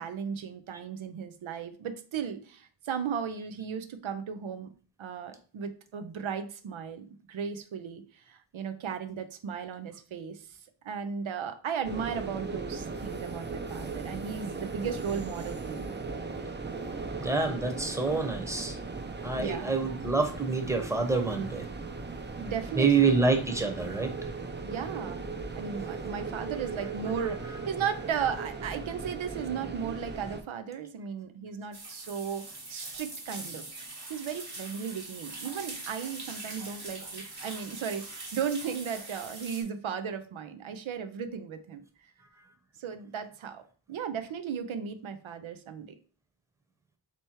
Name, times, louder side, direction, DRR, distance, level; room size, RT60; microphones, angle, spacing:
voice 1, 0.0-4.7 5.0-10.6 10.8-15.9 19.4-19.8 22.4-23.2 24.6-25.3 25.6-32.4 32.7-33.7 34.1-41.8 42.8-43.6 43.9-45.9, right 7 dB, 85° right, 8 dB, 0.6 m, -36 dB
sound 1, 11.8-30.4, right 4 dB, 25° right, 0.5 m, -38 dB
voice 2, 16.8-18.8 19.2-21.6 22.8-24.1, right 4 dB, 5° right, 4 dB, 0.9 m, -27 dB
sound 2, 31.7-39.6, right 2 dB, 55° right, 1.5 m, -42 dB
3.3 x 3.0 x 4.4 m, 0.40 s
wide cardioid pair, 50°, 46 cm